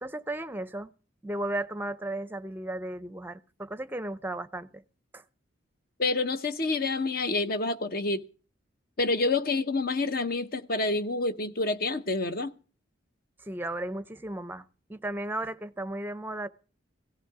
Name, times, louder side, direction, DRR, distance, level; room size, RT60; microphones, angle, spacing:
voice 1, 0.0-0.9 1.2-4.8 5.1-5.2 13.4-14.6 14.9-16.5, right 1 dB, 10° right, 0.6 m, -35 dB
voice 2, 6.0-8.3 9.0-12.5, left 3 dB, 50° left, 0.9 m, -28 dB
17.5 x 13.0 x 4.9 m
head